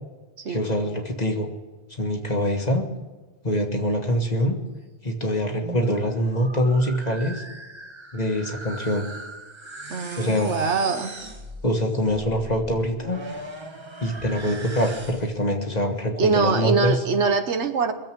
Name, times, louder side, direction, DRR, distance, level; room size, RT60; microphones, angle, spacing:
voice 1, 0.5-1.5 2.0-2.8 3.4-4.6 5.0-7.4 8.1-9.1 10.2-10.5 11.6-13.2 14.0-17.0, equal, 35° left, 3 dB, 1.7 m, -24 dB
sound 1, 5.6-15.5, right 2 dB, 25° right, 1.1 m, -40 dB
voice 2, 9.9-11.1 16.2-17.9, right 5 dB, 80° right, 7 dB, 1.4 m, -23 dB
23.0 x 7.7 x 6.1 m, 1.3 s
omnidirectional pair, 1.2 m